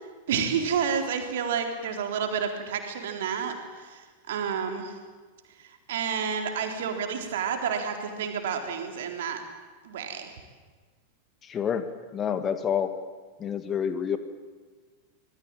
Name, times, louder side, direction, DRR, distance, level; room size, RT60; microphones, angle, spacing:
voice 1, 0.3-5.0 5.6-9.4 9.8-10.3, right 7 dB, 55° right, 4 dB, 3.8 m, -30 dB
voice 2, 11.4-12.9 13.4-14.2, left 8 dB, 25° left, 10 dB, 1.8 m, -28 dB
26.0 x 19.5 x 9.0 m, 1.4 s
figure-of-eight pair, 90°, 0 cm